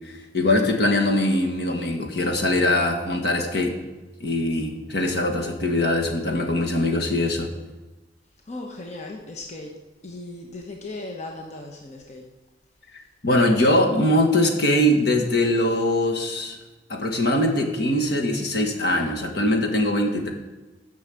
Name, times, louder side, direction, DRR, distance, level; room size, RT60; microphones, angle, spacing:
voice 1, 0.3-3.8 4.2-7.5 13.2-16.6 16.9-20.3, left 1 dB, 65° left, 1 dB, 1.6 m, -22 dB
voice 2, 8.5-9.7 10.0-12.3, left 2 dB, 40° left, 1 dB, 1.0 m, -37 dB
10.5 x 6.2 x 7.7 m, 1.2 s
head